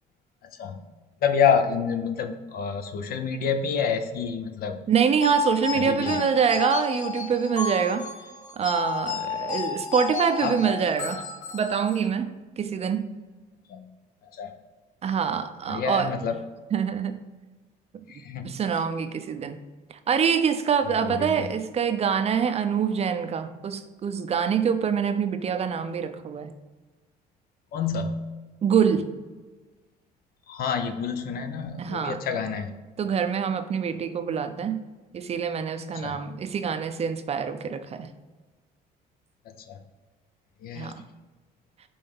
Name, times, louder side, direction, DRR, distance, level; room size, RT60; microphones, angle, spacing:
voice 1, 0.4-0.8 1.2-4.8 5.7-6.2 10.4-10.6 13.7-13.9 14.3-14.5 15.7-16.4 18.1-18.5 21.0-21.5 27.7-28.2 30.5-32.7 35.9-36.2 39.5-39.8 40.6-40.9, left 6 dB, 65° left, 8 dB, 0.7 m, -28 dB
voice 2, 4.9-8.0 8.6-11.2 11.5-13.1 15.0-16.1 16.7-17.2 18.4-19.6 20.1-26.5 28.6-29.1 31.8-32.2 33.0-34.8 35.1-38.1 40.8-41.0, right 7 dB, 40° right, 9 dB, 0.5 m, -25 dB
sound 1, 5.2-12.1, left 7 dB, 45° left, 1.1 m, -32 dB
5.4 x 3.4 x 5.4 m, 1.3 s
cardioid pair, 110°, 17 cm